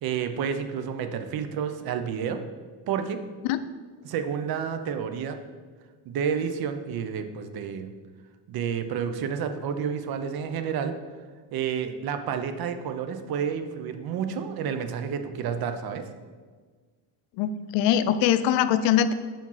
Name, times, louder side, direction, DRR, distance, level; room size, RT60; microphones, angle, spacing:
voice 1, 0.0-2.4 2.9-3.2 4.0-5.4 6.1-7.9 8.5-10.9 11.5-16.1, right 7 dB, 55° right, 8 dB, 0.7 m, -30 dB
voice 2, 17.4-19.1, left 10 dB, 80° left, 12 dB, 0.6 m, -22 dB
5.2 x 5.1 x 5.5 m, 1.5 s
cardioid pair, 130°, 44 cm